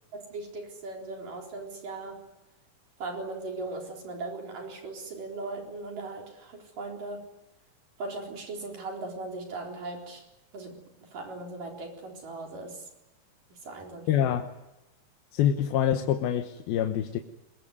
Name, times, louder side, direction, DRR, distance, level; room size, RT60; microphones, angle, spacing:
voice 1, 0.1-2.2 3.0-7.3 8.0-10.2 10.5-12.9 13.5-14.3, right 3 dB, 65° right, 1 dB, 5.6 m, -38 dB
voice 2, 14.1-14.5 15.3-17.2, left 10 dB, 90° left, 6 dB, 3.1 m, -25 dB
23.5 x 22.5 x 9.7 m, 0.97 s
omnidirectional pair, 4.1 m